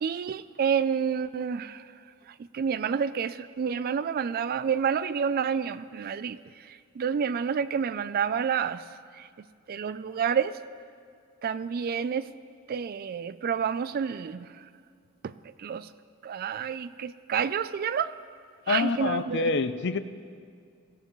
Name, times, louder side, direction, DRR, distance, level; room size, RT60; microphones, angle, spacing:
voice 1, 0.0-1.8 2.5-6.4 7.0-8.8 9.2-9.3 9.7-10.6 11.4-12.3 12.7-14.5 15.2-15.3 15.6-15.9 16.2-18.1 18.7-19.6, right 7 dB, 45° right, 15 dB, 0.3 m, -29 dB
voice 2, 18.7-20.0, left 4 dB, 55° left, 12 dB, 0.5 m, -26 dB
17.0 x 15.0 x 3.1 m, 2.1 s
head